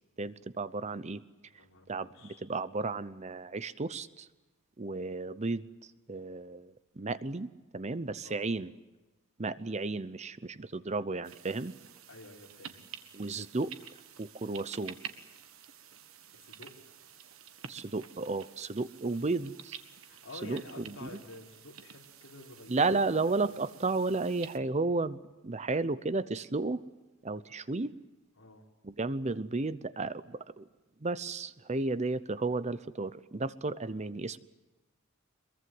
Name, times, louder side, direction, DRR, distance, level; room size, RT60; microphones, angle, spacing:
voice 1, 0.2-1.2 1.9-4.3 4.8-8.7 9.4-11.7 13.1-13.7 14.2-15.0 17.7-19.8 20.4-21.1 22.7-26.8 27.2-27.9 28.8-30.7 31.0-34.4, right 3 dB, 30° right, 15 dB, 0.7 m, -33 dB
voice 2, 1.5-2.5 8.2-8.5 12.1-12.9 16.3-16.7 20.1-23.5 28.4-28.7, left 2 dB, 65° left, 0 dB, 4.8 m, -50 dB
sound 1, 11.2-24.6, right 8 dB, 75° right, 1.6 m, -50 dB
23.5 x 22.5 x 7.8 m, 1.1 s
head